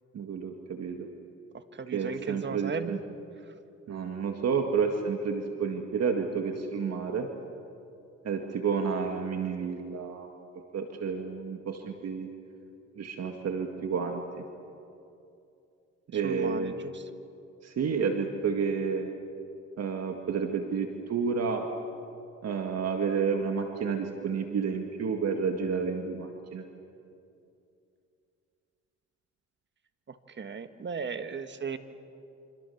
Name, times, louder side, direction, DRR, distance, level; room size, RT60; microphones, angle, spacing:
voice 1, 0.1-1.1 1.9-3.0 3.9-7.3 8.2-10.3 10.7-12.3 13.0-14.4 16.1-16.7 17.6-19.1 19.8-21.7 22.4-26.6, right 5 dB, 55° right, 4 dB, 2.0 m, -30 dB
voice 2, 1.5-3.0 3.4-3.5 16.1-17.1 30.1-31.8, right 5 dB, 40° right, 9 dB, 1.6 m, -37 dB
27.5 x 26.0 x 7.2 m, 2.7 s
cardioid pair, 90°, 30 cm